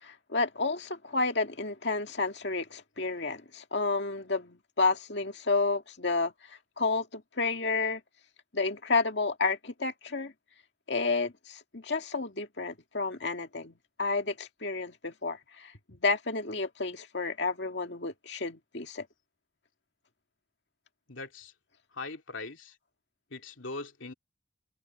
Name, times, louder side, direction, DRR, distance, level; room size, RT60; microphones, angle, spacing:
voice 1, 0.0-8.0 8.5-10.3 10.9-19.1, left 3 dB, 60° left, 2.2 m, -31 dB
voice 2, 21.1-21.5 21.9-22.8 23.3-24.1, left 3 dB, 85° left, 2.7 m, -41 dB
head